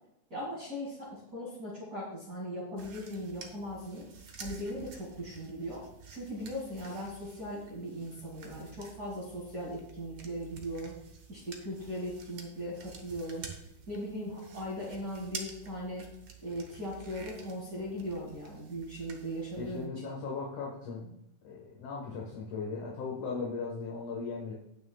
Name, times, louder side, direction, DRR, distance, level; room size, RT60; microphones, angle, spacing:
voice 1, 0.3-4.0 4.4-5.8 6.1-10.9 11.3-13.4 13.9-16.0 16.4-19.9, equal, 30° right, -7 dB, 2.6 m, -39 dB
sound 1, 2.8-19.9, right 5 dB, 70° right, 1.0 m, -50 dB
voice 2, 19.6-21.2 21.4-24.5, left 4 dB, 70° left, -3 dB, 2.8 m, -38 dB
18.5 x 6.3 x 2.3 m, 0.81 s
omnidirectional pair, 3.7 m